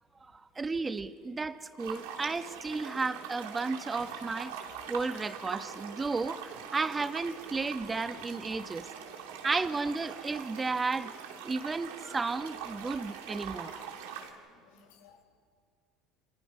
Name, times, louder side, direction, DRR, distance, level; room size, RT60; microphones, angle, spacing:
voice 1, 0.3-4.5 4.9-8.8 9.4-11.1 11.4-13.7, right 3 dB, 20° right, 10 dB, 1.4 m, -33 dB
sound 1, 1.8-14.3, right 8 dB, 80° right, 2.9 m, -43 dB
voice 2, 14.5-15.2, left 6 dB, 80° left, 3 dB, 5.1 m, -59 dB
28.0 x 27.0 x 5.6 m, 2.1 s
hypercardioid pair, 75°, 0 cm